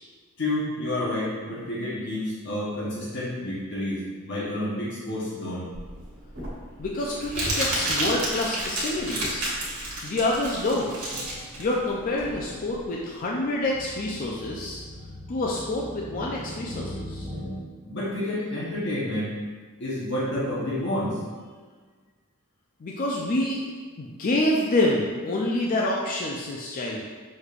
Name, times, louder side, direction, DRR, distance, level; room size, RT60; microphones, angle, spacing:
voice 1, 0.4-5.7 17.9-19.3 19.8-21.2, left 1 dB, 55° left, -7 dB, 0.9 m, -29 dB
Crumpling crinkling, 5.7-12.8, right 1 dB, 85° right, 1.4 m, -30 dB
voice 2, 6.8-9.5 10.0-10.9 11.6-14.8 15.3-17.3 22.8-23.6 24.0-27.0, left 1 dB, 40° left, -2 dB, 0.4 m, -27 dB
sound 1, 8.9-9.2 9.8-10.0 10.2-17.6, equal, 10° right, 1.2 m, -41 dB
6.3 x 3.3 x 2.4 m, 1.5 s
head